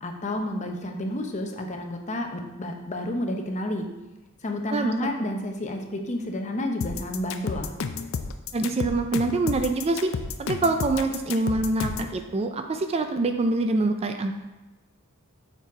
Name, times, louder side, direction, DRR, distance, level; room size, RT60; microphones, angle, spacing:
voice 1, 0.0-3.9 4.4-7.7, left 1 dB, 35° left, 3 dB, 0.7 m, -30 dB
sound 1, 6.8-12.1, left 5 dB, 65° left, 0.5 m, -31 dB
voice 2, 8.5-10.1 10.4-14.3, right 2 dB, 30° right, 6 dB, 0.4 m, -25 dB
7.0 x 4.0 x 4.7 m, 1.1 s
head